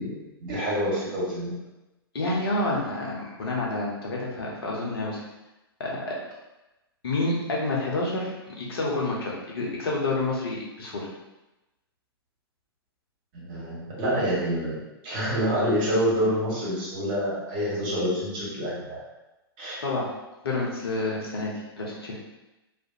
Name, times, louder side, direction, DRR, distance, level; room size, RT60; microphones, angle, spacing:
voice 1, 0.0-1.5 13.3-14.8 15.0-19.0 19.6-19.8, equal, 40° right, -6 dB, 1.3 m, -27 dB
voice 2, 2.1-5.2 5.8-6.2 7.0-11.1 19.8-20.1 20.4-22.2, left 2 dB, 70° left, -3 dB, 0.8 m, -29 dB
2.5 x 2.1 x 2.7 m, 1.0 s
figure-of-eight pair, 110°, 13 cm